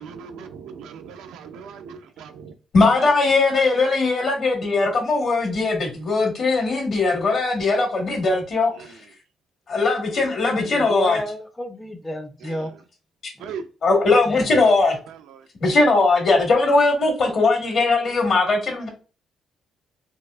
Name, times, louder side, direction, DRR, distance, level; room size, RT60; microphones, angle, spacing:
voice 1, 0.0-2.5 2.8-2.9 8.7-8.9 12.4-12.8 13.4-13.6 14.6-14.7 15.1-15.4, right 6 dB, 90° right, 0.5 m, -39 dB
voice 2, 2.7-8.7 9.7-11.2 13.8-15.0 15.6-18.9, left 3 dB, 60° left, 1.7 m, -19 dB
voice 3, 10.7-12.7 14.3-14.5, left 1 dB, 10° left, 0.5 m, -31 dB
4.4 x 2.4 x 2.4 m
cardioid pair, 90°, 0 cm